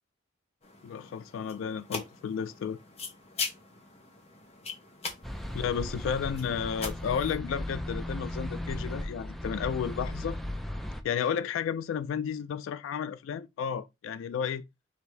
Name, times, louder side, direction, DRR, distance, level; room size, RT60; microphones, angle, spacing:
sound 1, 0.6-7.4, left 4 dB, 30° left, 0.8 m, -41 dB
voice 1, 0.8-2.8 5.5-10.4 11.0-14.6, left 7 dB, 90° left, 0.3 m, -32 dB
sound 2, 5.2-11.0, left 1 dB, ahead, 0.3 m, -36 dB
4.9 x 2.6 x 3.2 m
head